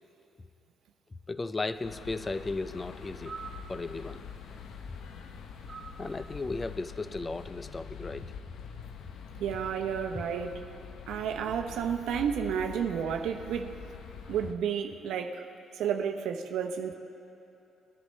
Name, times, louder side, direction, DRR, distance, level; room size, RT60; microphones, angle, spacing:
voice 1, 1.3-3.4 3.7-4.2 6.0-8.4, left 3 dB, 25° left, 12 dB, 0.5 m, -35 dB
sound 1, 1.7-6.8, right 5 dB, 40° right, 2.6 m, -50 dB
sound 2, 1.8-14.5, left 6 dB, 75° left, 0.7 m, -45 dB
voice 2, 9.3-10.6 11.1-13.7 14.3-15.5 15.7-16.9, right 8 dB, 85° right, 4 dB, 0.8 m, -31 dB
22.0 x 11.0 x 3.2 m, 2.9 s
cardioid pair, 90°, 0 cm